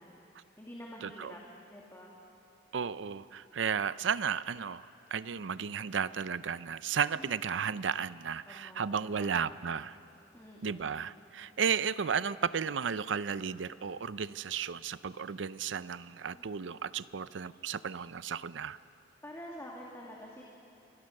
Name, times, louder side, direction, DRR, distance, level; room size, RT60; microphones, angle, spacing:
voice 1, 0.0-1.4 1.7-2.1 7.2-7.3 8.4-9.4 10.3-10.9 16.3-16.4 19.2-20.4, equal, 15° left, -3 dB, 2.2 m, -48 dB
voice 2, 1.0-1.4 2.7-10.0 10.6-18.8, right 7 dB, 80° right, 16 dB, 0.5 m, -34 dB
27.5 x 21.5 x 6.6 m, 3.0 s
head